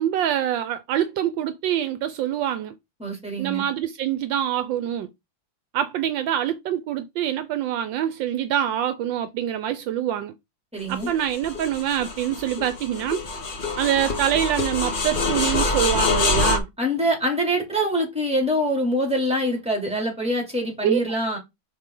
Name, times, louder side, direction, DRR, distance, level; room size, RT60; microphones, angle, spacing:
voice 1, 0.0-2.7 3.4-5.1 5.7-10.3 10.9-13.2 13.8-16.7 20.8-21.0, right 11 dB, 75° right, 1.3 m, -25 dB
voice 2, 3.0-3.7 10.7-11.1 16.8-21.4, equal, 5° right, 2.7 m, -24 dB
sound 1, 10.9-16.6, left 3 dB, 40° left, 0.7 m, -25 dB
6.4 x 4.6 x 3.8 m
omnidirectional pair, 2.2 m